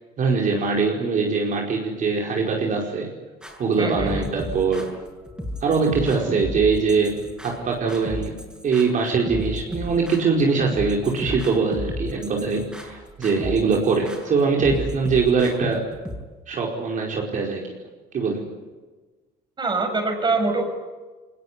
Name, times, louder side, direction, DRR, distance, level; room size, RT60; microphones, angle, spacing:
voice 1, 0.2-3.1 3.6-4.9 5.6-8.3 8.6-15.8 16.5-17.6 18.1-18.5, right 4 dB, 50° right, 0 dB, 4.9 m, -22 dB
sound 1, 3.4-16.2, left 1 dB, 5° right, 6.9 m, -34 dB
voice 2, 3.8-4.2 19.6-20.7, right 3 dB, 25° right, 5 dB, 6.8 m, -24 dB
23.0 x 20.5 x 9.7 m, 1.3 s
cardioid pair, 110°, 17 cm